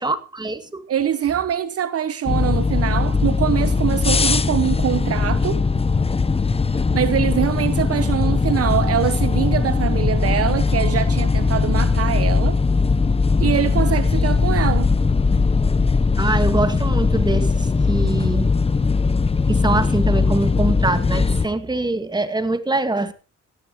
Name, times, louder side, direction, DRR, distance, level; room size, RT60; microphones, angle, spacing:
voice 1, 0.0-0.8 16.2-18.5 19.5-23.1, right 2 dB, 15° right, 1.8 m, -23 dB
voice 2, 0.9-5.7 6.9-12.6 13.4-14.9, right 10 dB, 50° right, 0.9 m, -23 dB
sound 1, 2.3-21.5, left 4 dB, 20° left, 0.8 m, -19 dB
18.5 x 13.0 x 3.0 m
cardioid pair, 90°, 30 cm